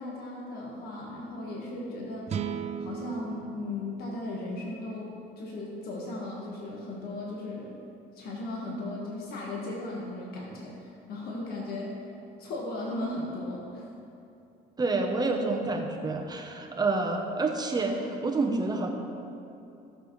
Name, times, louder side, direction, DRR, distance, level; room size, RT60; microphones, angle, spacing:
voice 1, 0.0-2.4 2.8-7.8 8.1-12.0 12.4-13.8, left 2 dB, 65° left, -3 dB, 1.6 m, -36 dB
sound 1, 2.3-5.6, right 7 dB, 40° right, 0.5 m, -38 dB
voice 2, 14.8-18.9, right 3 dB, 25° right, 2 dB, 0.9 m, -28 dB
15.5 x 6.6 x 3.2 m, 2.8 s
cardioid pair, 110°, 17 cm